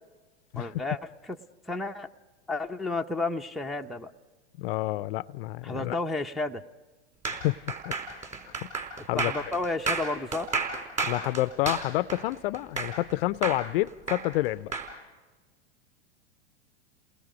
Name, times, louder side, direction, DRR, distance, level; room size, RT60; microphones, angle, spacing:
voice 1, 0.6-1.0 1.3-1.4 1.7-2.1 2.5-4.1 5.6-6.6 9.2-10.5, left 2 dB, ahead, 0.6 m, -31 dB
voice 2, 4.6-6.0 7.3-8.7 9.1-9.3 11.0-14.7, left 17 dB, 55° left, 0.6 m, -29 dB
sound 1, 7.3-13.1 13.4-14.9, right 4 dB, 20° right, 4.3 m, -32 dB
29.5 x 20.0 x 5.1 m
hypercardioid pair, 105°, 35 cm